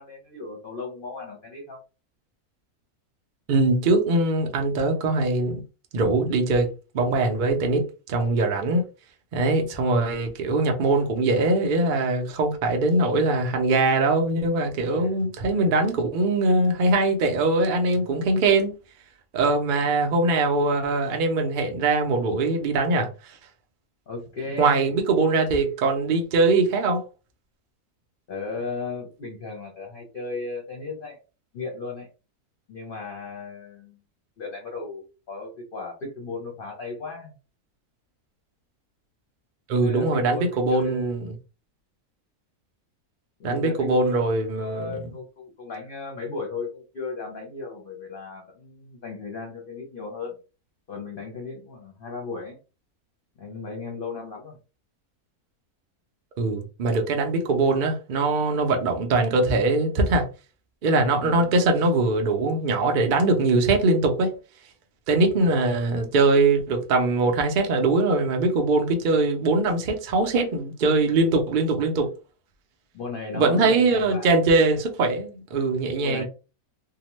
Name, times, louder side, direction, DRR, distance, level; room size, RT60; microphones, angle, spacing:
voice 1, 0.0-1.8 14.9-15.1 24.1-25.0 28.3-31.2 31.5-32.1 32.7-34.0 34.4-37.3 39.7-41.1 43.4-44.2 44.5-50.4 50.9-52.6 53.4-54.6 61.2-61.5 65.3-65.6 71.4-71.5 72.9-74.3 76.0-76.2, left 4 dB, 50° left, 0.7 m, -36 dB
voice 2, 3.5-5.6 5.9-8.8 9.3-18.7 19.3-23.4 24.6-27.0 39.7-41.3 43.4-45.1 56.4-60.3 60.8-64.4 65.1-72.1 73.3-76.2, right 2 dB, 85° right, 0.4 m, -22 dB
2.8 x 2.0 x 3.0 m
omnidirectional pair, 1.6 m